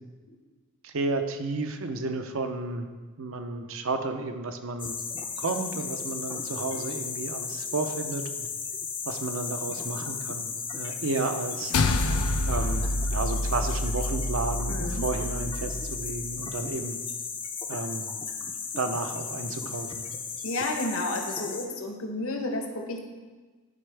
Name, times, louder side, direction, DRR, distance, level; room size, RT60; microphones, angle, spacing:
voice 1, 0.8-2.9 3.2-5.0 5.4-8.5 9.1-11.7 12.5-17.0 17.7-18.1 18.8-20.1, right 3 dB, 65° right, 7 dB, 0.6 m, -32 dB
sound 1, 4.8-21.7, left 5 dB, 25° left, 0.4 m, -35 dB
sound 2, 11.7-16.3, left 2 dB, 90° left, 0.5 m, -28 dB
voice 2, 14.7-15.0 20.4-23.0, left 2 dB, 70° left, 3 dB, 0.9 m, -31 dB
11.0 x 4.5 x 3.3 m, 1.3 s
head